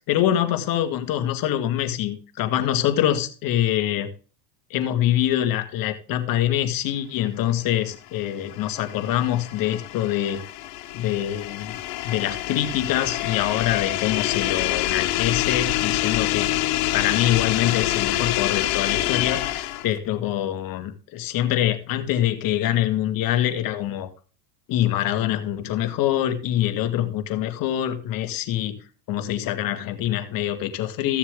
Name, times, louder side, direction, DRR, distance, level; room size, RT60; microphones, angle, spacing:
voice 1, 0.0-4.1 4.7-10.4 10.9-11.8 12.0-16.5 16.9-24.1 24.7-28.8 29.1-31.2, left 12 dB, 40° left, 7 dB, 2.0 m, -24 dB
sound 1, 8.1-20.0, left 15 dB, 60° left, 1.4 m, -26 dB
14.5 x 7.1 x 3.8 m, 0.37 s
hypercardioid pair, 110°, 50 cm